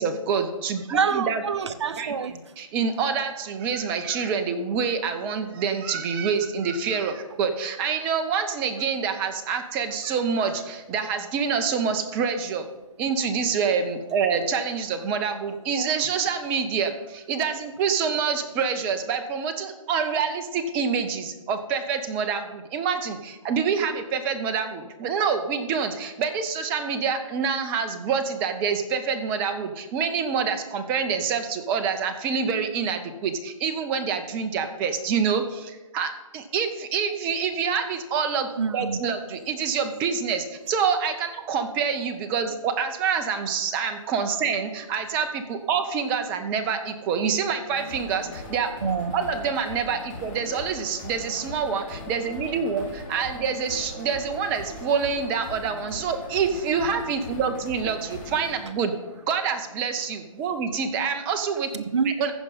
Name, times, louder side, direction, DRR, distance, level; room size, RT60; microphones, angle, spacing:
voice 1, 0.0-1.4 2.0-2.1 2.6-12.6 13.0-48.7 49.1-58.9 59.3-61.8 62.2-62.3, right 6 dB, 10° right, 7 dB, 0.4 m, -26 dB
voice 2, 0.9-2.3 38.6-39.0 48.8-49.2 61.7-62.2, right 5 dB, 55° right, 10 dB, 0.8 m, -26 dB
sound 1, 47.7-59.8, left 2 dB, 25° left, 2.1 m, -40 dB
14.5 x 5.2 x 5.4 m, 1.2 s
figure-of-eight pair, 150°, 18 cm